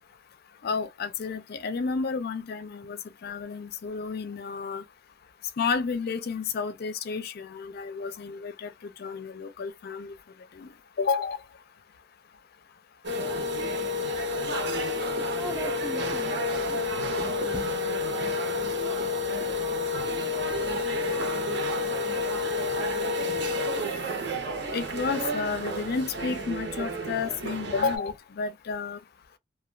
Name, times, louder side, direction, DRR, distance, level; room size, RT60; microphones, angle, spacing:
voice 1, 0.6-4.8 5.6-10.1 10.5-10.7 11.0-11.4 24.7-29.0, left 5 dB, 55° left, 0.4 m, -31 dB
sound 1, 13.0-28.0, left 2 dB, 65° right, 0.8 m, -29 dB
voice 2, 15.4-17.8, right 2 dB, 10° right, 0.5 m, -40 dB
2.3 x 2.2 x 3.2 m
head